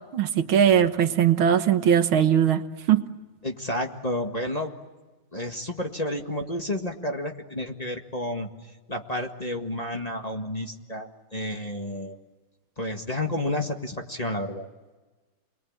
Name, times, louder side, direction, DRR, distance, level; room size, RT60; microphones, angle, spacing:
voice 1, 0.1-2.6 2.9-3.1, right 9 dB, 85° right, 9 dB, 2.0 m, -20 dB
voice 2, 3.4-4.7 5.3-8.5 8.9-12.2 12.8-14.7, left 1 dB, 20° left, 3 dB, 1.8 m, -31 dB
29.5 x 22.0 x 8.8 m, 1.2 s
omnidirectional pair, 2.2 m